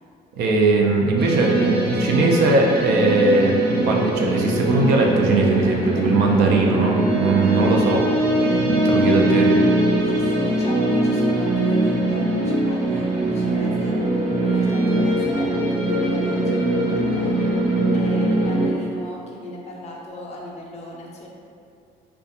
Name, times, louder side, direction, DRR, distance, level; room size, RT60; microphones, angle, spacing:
voice 1, 0.4-8.1 8.6-9.5, right 3 dB, 75° right, 0 dB, 0.4 m, -19 dB
sound 1, 1.2-18.7, right 1 dB, 30° right, 0.7 m, -21 dB
voice 2, 8.7-9.1 10.1-17.5 17.9-21.3, left 1 dB, 40° left, -2 dB, 0.5 m, -37 dB
2.4 x 2.1 x 2.7 m, 2.4 s
cardioid pair, 110°, 17 cm